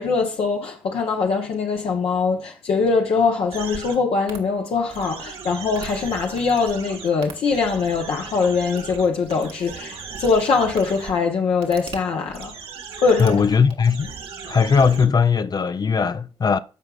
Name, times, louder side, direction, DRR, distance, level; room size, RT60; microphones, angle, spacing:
voice 1, 0.0-12.5 13.0-13.4, left 4 dB, 70° left, 1.0 m, -22 dB
sound 1, 3.5-4.0 4.3-4.4 4.9-11.1 11.6-12.0 12.2-15.1, right 6 dB, 70° right, 1.4 m, -37 dB
voice 2, 13.2-14.1 14.4-16.6, left 6 dB, 40° left, 0.5 m, -19 dB
13.5 x 4.8 x 2.4 m
supercardioid pair, 45°, 10 cm